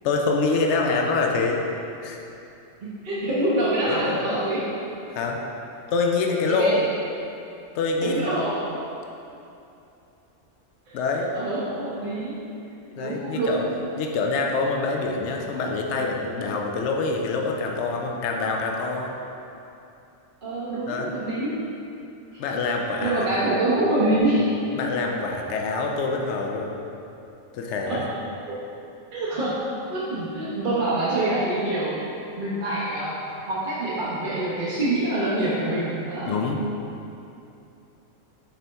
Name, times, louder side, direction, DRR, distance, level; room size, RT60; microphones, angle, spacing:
voice 1, 0.0-1.6 2.0-2.2 3.9-4.3 5.1-5.4 5.9-6.9 7.7-8.6 10.9-11.3 13.0-13.6 14.0-19.1 20.9-21.2 22.4-23.5 24.7-26.8 27.5-28.1 36.3-36.6, left 3 dB, 70° left, 1 dB, 0.9 m, -25 dB
voice 2, 2.8-4.7 6.2-6.8 8.0-8.6 10.9-12.4 13.0-13.7 20.4-21.6 22.8-24.6 27.9-28.0 28.5-28.6 29.1-29.6 29.8-32.0 32.4-33.2 33.5-36.3, right 2 dB, 45° right, -8 dB, 1.0 m, -26 dB
6.9 x 4.1 x 3.4 m, 2.7 s
omnidirectional pair, 1.3 m